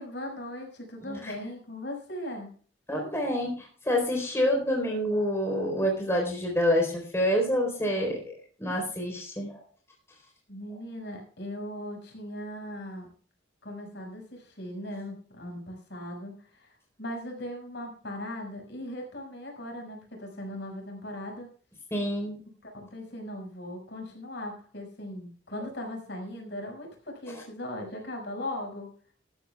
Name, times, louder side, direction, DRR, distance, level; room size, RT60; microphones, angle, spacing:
voice 1, 0.0-2.5 10.5-13.1 13.6-21.5 22.6-28.9, left 1 dB, 60° left, 1 dB, 5.6 m, -39 dB
voice 2, 1.0-1.3 2.9-8.3 8.6-9.6 21.9-22.4 27.3-27.4, equal, 15° left, 1 dB, 4.0 m, -27 dB
18.5 x 13.5 x 2.3 m, 0.43 s
head